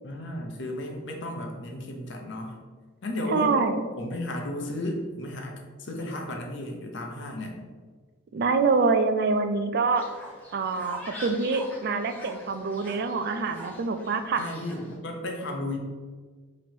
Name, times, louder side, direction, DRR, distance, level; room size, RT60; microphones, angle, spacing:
voice 1, 0.0-2.6 3.0-3.6 4.0-7.6 14.3-15.8, left 1 dB, 60° left, 2 dB, 0.7 m, -34 dB
voice 2, 3.3-3.9 8.3-10.1 10.5-14.5, right 4 dB, 50° right, 8 dB, 0.3 m, -25 dB
Fowl, 10.0-15.0, equal, 10° left, 0.6 m, -43 dB
3.0 x 2.9 x 4.3 m, 1.4 s
head